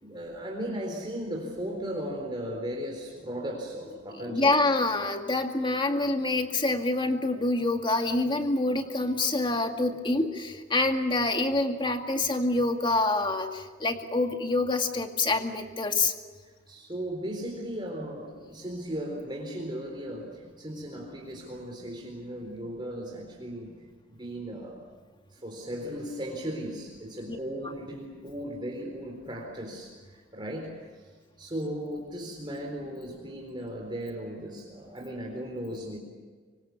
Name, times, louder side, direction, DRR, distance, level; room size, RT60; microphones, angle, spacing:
voice 1, 0.0-4.6 16.4-23.7 24.1-24.8 25.3-31.1 31.4-36.0, equal, 25° right, 0 dB, 4.1 m, -37 dB
voice 2, 4.3-13.5 13.8-16.1 27.3-27.4, left 2 dB, 25° left, 5 dB, 2.1 m, -26 dB
25.0 x 24.5 x 7.1 m, 1.5 s
head